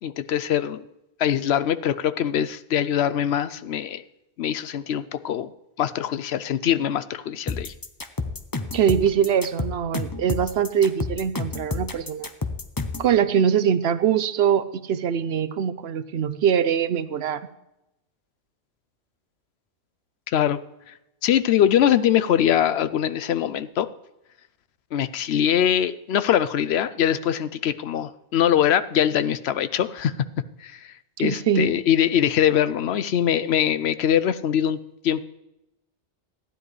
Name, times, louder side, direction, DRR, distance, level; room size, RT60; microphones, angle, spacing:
voice 1, 0.0-0.9 1.2-4.0 4.4-5.5 5.8-7.7 20.3-20.6 20.9-21.0 21.2-23.9 24.9-30.1 30.6-30.9 31.2-34.8 35.0-35.2, left 10 dB, 65° left, 13 dB, 0.9 m, -22 dB
sound 1, 7.5-13.1, left 3 dB, 25° left, 0.6 m, -30 dB
voice 2, 8.7-12.3 13.0-17.4 31.2-31.7, right 8 dB, 65° right, 12 dB, 0.8 m, -22 dB
15.0 x 10.5 x 3.2 m, 0.88 s
omnidirectional pair, 1.2 m